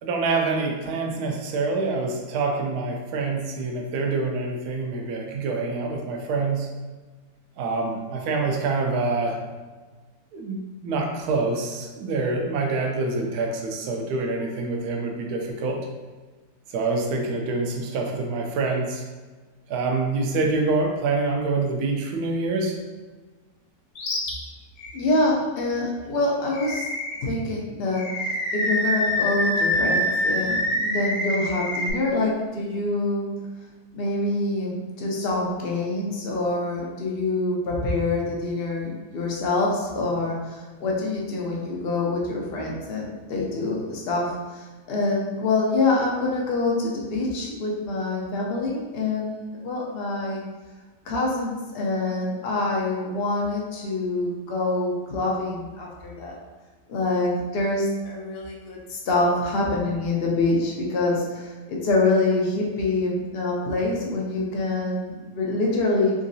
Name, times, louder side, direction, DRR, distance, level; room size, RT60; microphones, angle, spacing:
voice 1, 0.0-6.7 7.6-9.4 10.3-10.6 10.8-15.8 16.7-19.0 19.7-22.7, right 3 dB, 70° right, 1 dB, 1.0 m, -26 dB
Animal, 24.0-24.3 24.8-24.9 26.5-27.3 27.9-31.9, left 1 dB, 85° left, 1.4 m, -25 dB
voice 2, 24.9-26.9 27.2-33.3 33.9-50.4 51.0-56.4 56.9-66.1, left 2 dB, 60° left, -2 dB, 0.6 m, -25 dB
3.7 x 3.1 x 2.6 m, 1.3 s
omnidirectional pair, 1.8 m